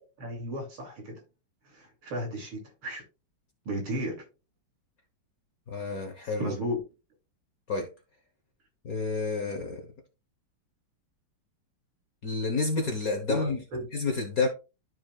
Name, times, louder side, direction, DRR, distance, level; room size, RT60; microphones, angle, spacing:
voice 1, 0.2-1.2 1.7-3.0 3.7-4.2 6.4-6.8 13.3-13.8, equal, 70° right, 3.6 m, -34 dB
voice 2, 5.7-6.5 7.7-7.9 8.8-9.9 12.2-13.6 13.9-14.5, left 3 dB, 50° left, 1.4 m, -29 dB
13.0 x 4.7 x 2.4 m
omnidirectional pair, 2.4 m